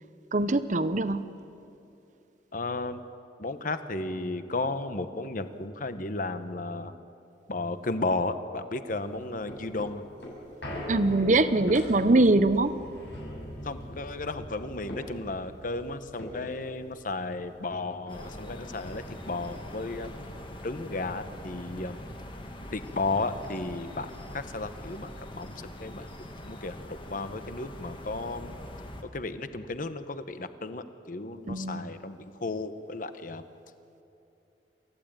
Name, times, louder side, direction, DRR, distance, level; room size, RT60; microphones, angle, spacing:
voice 1, 0.3-1.3 10.9-12.8 31.5-31.9, right 2 dB, 45° right, 12 dB, 0.9 m, -23 dB
voice 2, 2.5-3.0 3.4-6.9 7.5-10.0 13.6-20.2 20.6-22.0 22.7-25.5 25.8-28.5 29.1-33.4, left 2 dB, 50° left, 10 dB, 1.0 m, -34 dB
sound 1, 9.0-17.7 18.1-18.2 18.4-19.8 20.3-20.4, equal, 85° left, 7.6 m, -42 dB
sound 2, 18.1-29.0, left 1 dB, 30° left, 1.8 m, -43 dB
28.5 x 14.5 x 8.9 m, 2.7 s
head